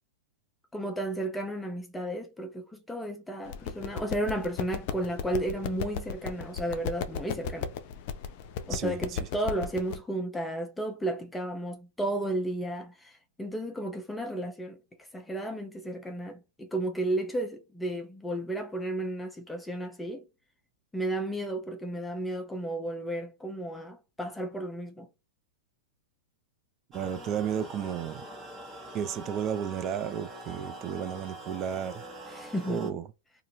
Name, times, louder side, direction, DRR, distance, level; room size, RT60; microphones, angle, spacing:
voice 1, 0.7-7.7 8.7-14.8 15.1-20.2 20.9-25.1 32.3-33.0, right 1 dB, 5° left, 0.6 m, -33 dB
sound 1, 3.5-10.0, left 7 dB, 55° left, 0.5 m, -36 dB
voice 2, 8.7-9.2 26.9-28.3 28.9-32.0 32.7-33.0, right 8 dB, 35° right, 0.4 m, -33 dB
sound 2, 26.9-32.9, right 1 dB, 20° right, 1.2 m, -44 dB
2.7 x 2.5 x 2.7 m
hypercardioid pair, 105°, 0 cm